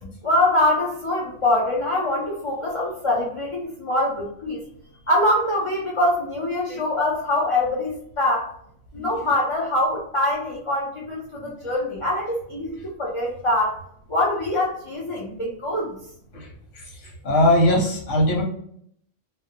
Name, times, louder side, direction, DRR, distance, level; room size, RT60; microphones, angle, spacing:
voice 1, 0.0-4.6 5.1-8.5 8.9-13.8 14.1-16.0, left 1 dB, 40° left, -4 dB, 0.4 m, -24 dB
voice 2, 16.3-18.4, left 1 dB, 80° left, -1 dB, 1.2 m, -21 dB
2.5 x 2.0 x 2.7 m, 0.67 s
omnidirectional pair, 1.3 m